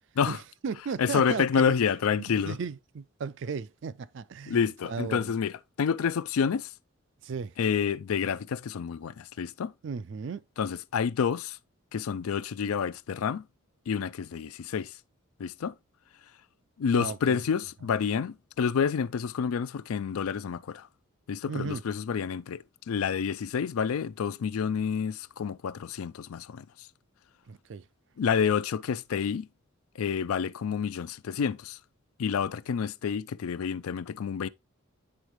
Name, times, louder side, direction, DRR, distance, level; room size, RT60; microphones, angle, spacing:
voice 1, 0.3-1.8 2.2-5.4 7.2-7.6 9.8-10.4 16.9-17.5 21.5-21.8 27.4-27.9, right 5 dB, 55° right, 0.4 m, -36 dB
voice 2, 1.0-2.5 4.5-5.5 5.8-6.7 7.6-9.7 10.6-11.6 11.9-13.5 13.9-14.9 15.4-15.7 16.8-20.9 21.3-26.7 28.2-29.5 30.0-31.8 32.2-34.5, left 6 dB, 90° left, 0.4 m, -28 dB
9.6 x 3.9 x 3.1 m
head